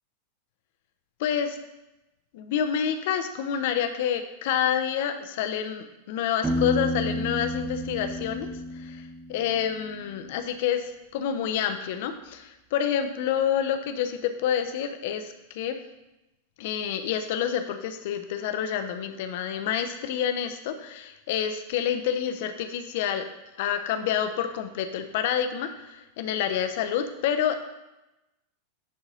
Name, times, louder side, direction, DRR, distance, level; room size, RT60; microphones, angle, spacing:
voice 1, 1.2-1.6 2.3-8.5 8.7-15.7 16.6-23.3 23.6-27.5, left 9 dB, 50° left, 8 dB, 0.6 m, -28 dB
Piano, 6.4-10.1, equal, 10° right, 0.8 m, -31 dB
10.0 x 4.0 x 3.9 m, 0.96 s
figure-of-eight pair, 90°, 0 cm